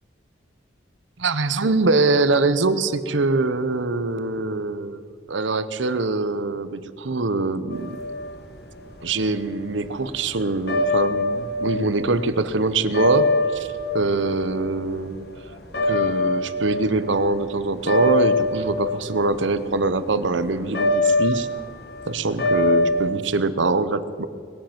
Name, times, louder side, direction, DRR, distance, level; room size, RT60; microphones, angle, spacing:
voice 1, 1.2-5.0 5.3-8.0 9.0-13.7 13.9-15.3 15.8-21.5 22.1-24.3, right 3 dB, 80° right, 13 dB, 0.9 m, -23 dB
sound 1, 7.7-17.4 17.7-23.1, left 2 dB, 55° left, 2.0 m, -24 dB
20.0 x 8.7 x 7.9 m, 2.2 s
head